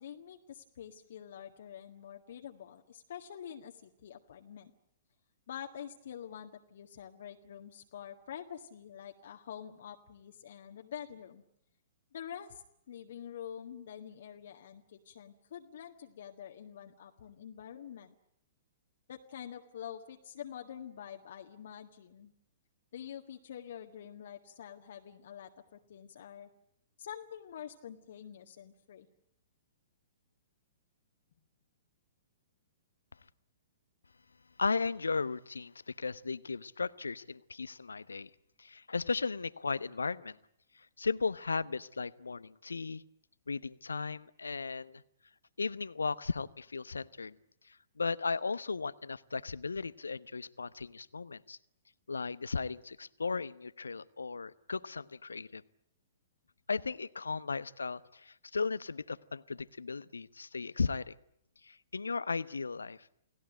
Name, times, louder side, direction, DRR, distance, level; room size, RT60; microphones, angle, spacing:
voice 1, 0.0-4.7 5.5-11.4 12.1-18.1 19.1-22.3 22.9-26.5 27.0-29.1, left 9 dB, 55° left, 3 dB, 1.7 m, -47 dB
voice 2, 34.6-38.3 38.6-40.4 40.7-43.0 43.5-45.0 45.6-47.4 47.7-51.6 52.1-55.6 56.7-61.1 61.6-63.1, left 4 dB, 75° left, 17 dB, 0.9 m, -36 dB
29.5 x 18.5 x 9.0 m, 0.77 s
figure-of-eight pair, 115°, 0 cm